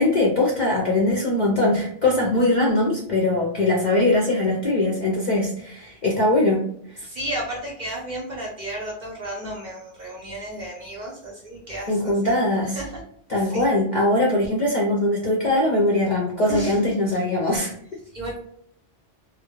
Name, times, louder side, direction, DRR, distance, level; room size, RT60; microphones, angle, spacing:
voice 1, 0.0-6.6 6.9-7.1 11.9-12.8 13.3-17.7, left 2 dB, 55° left, -3 dB, 0.5 m, -21 dB
voice 2, 7.0-12.4 12.8-13.0 13.4-13.6 16.5-16.9 18.1-18.4, right 1 dB, 45° right, -3 dB, 0.6 m, -33 dB
2.2 x 2.1 x 2.9 m, 0.67 s
omnidirectional pair, 1.3 m